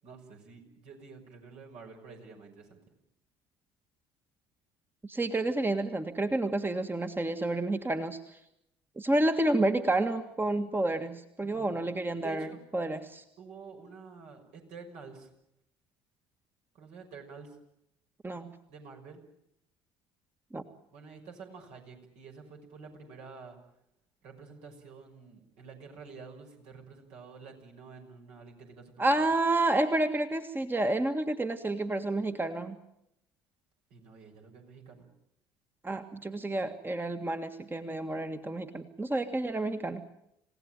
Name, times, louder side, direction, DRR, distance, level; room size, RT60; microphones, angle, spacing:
voice 1, 0.0-2.8 11.4-11.8 12.2-12.6 13.4-15.3 16.7-17.6 18.7-19.2 20.9-23.6 24.2-29.2 33.9-35.1, right 5 dB, 65° right, 2 dB, 6.2 m, -49 dB
voice 2, 5.0-8.4 8.9-12.5 12.7-13.2 18.2-18.5 20.5-20.6 29.0-32.8 35.8-40.0, right 2 dB, 15° right, 7 dB, 1.8 m, -30 dB
28.0 x 17.5 x 9.1 m, 0.79 s
hypercardioid pair, 60°, 13 cm